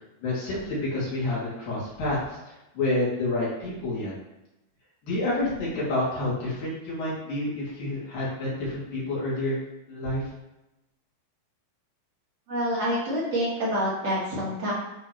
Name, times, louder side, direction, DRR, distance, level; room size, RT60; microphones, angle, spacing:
voice 1, 0.2-4.1 5.0-9.6 9.9-10.2, left 2 dB, 65° left, -7 dB, 3.9 m, -29 dB
voice 2, 12.5-14.7, equal, 50° right, -7 dB, 2.4 m, -27 dB
11.0 x 3.7 x 3.0 m, 0.95 s
omnidirectional pair, 4.5 m